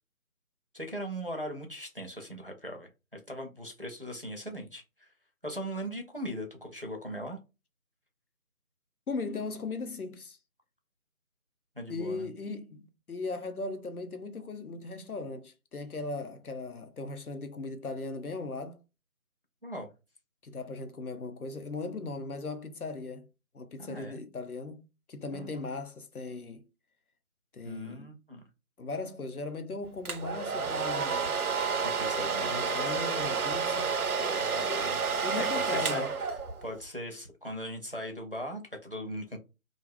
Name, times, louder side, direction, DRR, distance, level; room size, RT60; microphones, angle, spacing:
voice 1, 0.7-5.1 5.4-7.4 11.8-12.3 19.6-19.9 23.8-24.2 25.3-25.7 27.6-28.4 31.8-32.6 34.2-35.0 35.3-36.1 36.6-39.4, equal, 40° right, 0.5 m, -39 dB
voice 2, 9.1-10.4 11.9-18.8 20.4-23.3 23.5-26.7 27.5-28.1 28.8-31.3 32.2-34.0 35.2-36.1, left 3 dB, 85° left, 0.7 m, -38 dB
Domestic sounds home sounds, 30.0-36.7, right 5 dB, 85° right, 0.6 m, -30 dB
2.5 x 2.3 x 3.4 m
figure-of-eight pair, 165°, 43 cm